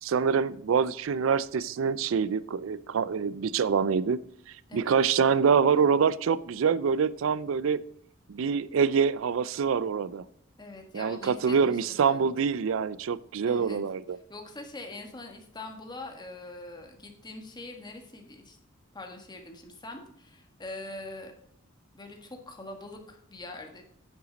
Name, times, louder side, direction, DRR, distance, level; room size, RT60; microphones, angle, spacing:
voice 1, 0.0-4.2 4.7-7.8 8.3-10.2 10.9-14.2, right 6 dB, 75° right, 19 dB, 0.4 m, -25 dB
voice 2, 10.6-12.3 13.5-13.8 14.3-18.6 18.9-21.3 21.9-23.8, left 2 dB, 20° left, 3 dB, 1.7 m, -43 dB
10.0 x 8.0 x 4.0 m, 0.69 s
head